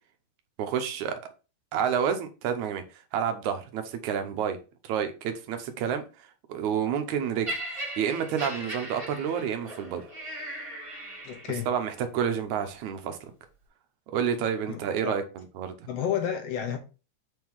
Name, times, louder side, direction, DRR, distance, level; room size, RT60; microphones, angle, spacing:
voice 1, 0.6-1.2 1.7-4.6 4.8-6.0 6.5-10.1 11.7-13.3 14.1-15.9, right 8 dB, 80° right, 2.3 m, -29 dB
Laughter, 7.4-11.7 12.5-12.7, right 1 dB, 15° right, 1.1 m, -38 dB
voice 2, 11.2-11.7 14.7-15.1 15.9-16.8, left 9 dB, 70° left, 1.8 m, -31 dB
7.0 x 3.7 x 4.6 m
omnidirectional pair, 3.3 m